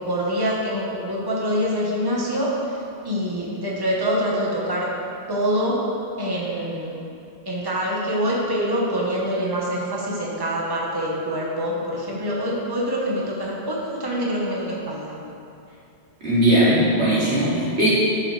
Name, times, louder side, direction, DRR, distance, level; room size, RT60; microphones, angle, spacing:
voice 1, 0.0-2.8 3.0-4.9 5.3-5.8 6.2-7.0 7.4-15.2, equal, 20° right, -5 dB, 1.4 m, -25 dB
voice 2, 16.2-17.9, right 1 dB, 85° right, -9 dB, 2.9 m, -19 dB
13.0 x 7.3 x 3.4 m, 2.6 s
omnidirectional pair, 1.1 m